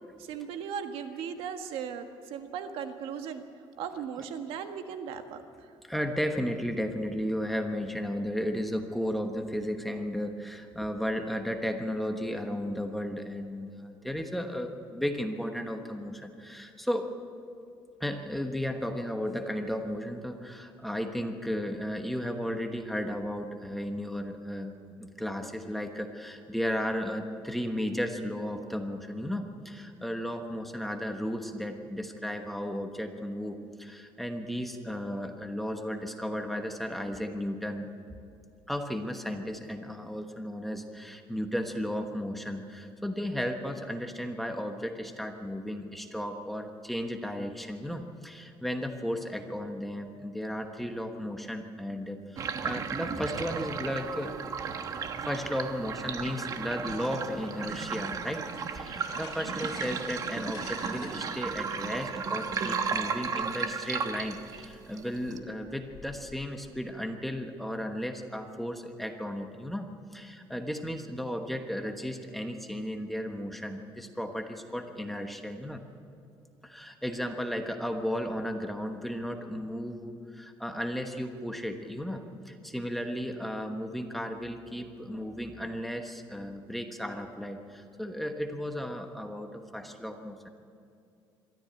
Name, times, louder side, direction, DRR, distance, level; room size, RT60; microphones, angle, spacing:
voice 1, 0.2-3.5 3.8-5.7, right 7 dB, 75° right, 7 dB, 1.6 m, -37 dB
voice 2, 5.8-17.1 18.0-37.9 38.7-54.3 55.2-75.8 76.6-90.5, equal, ahead, 5 dB, 1.2 m, -34 dB
sound 1, 52.4-65.4, right 6 dB, 40° right, 1.2 m, -34 dB
sound 2, 57.3-66.7, left 4 dB, 40° left, 6.2 m, -52 dB
22.5 x 14.0 x 8.6 m, 2.5 s
cardioid pair, 160°, 9 cm